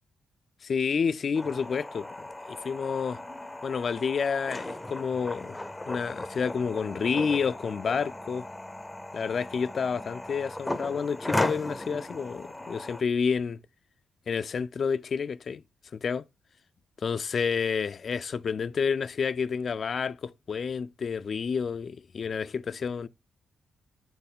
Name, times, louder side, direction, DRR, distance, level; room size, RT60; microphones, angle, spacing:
voice 1, 0.6-2.1 2.5-3.2 3.6-5.6 5.9-8.4 9.1-13.6 14.3-15.6 15.9-16.2 17.0-23.1, left 6 dB, 55° left, 0.4 m, -29 dB
sound 1, 1.3-13.0, left 1 dB, 15° left, 0.6 m, -36 dB
7.9 x 4.6 x 3.5 m
hypercardioid pair, 45°, 0 cm